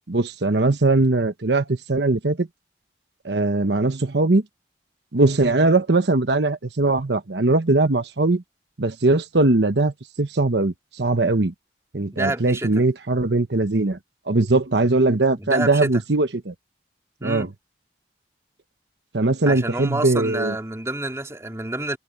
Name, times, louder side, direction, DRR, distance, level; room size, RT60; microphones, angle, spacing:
voice 1, 0.1-2.5 3.2-4.4 5.1-8.4 8.8-11.5 11.9-14.0 14.3-16.5 17.2-17.5 19.1-20.5, right 2 dB, 75° right, 1.1 m, -20 dB
voice 2, 12.1-12.7 15.4-15.9 17.2-17.5 19.5-22.0, right 2 dB, 15° right, 2.4 m, -28 dB
head